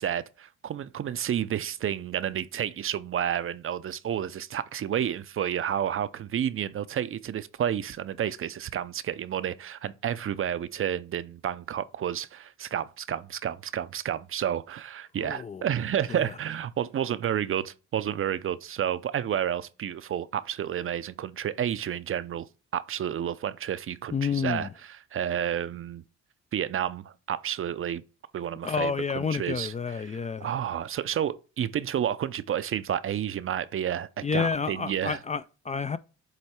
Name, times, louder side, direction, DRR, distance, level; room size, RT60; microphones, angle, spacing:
voice 1, 0.0-22.5 22.7-26.0 26.5-28.0 28.3-35.2, right 9 dB, 45° right, 0.5 m, -30 dB
voice 2, 15.2-15.7 16.1-16.2 24.1-24.7 28.6-30.5 34.2-36.0, left 5 dB, 25° left, 0.3 m, -29 dB
8.0 x 3.1 x 4.4 m
cardioid pair, 90°, 30 cm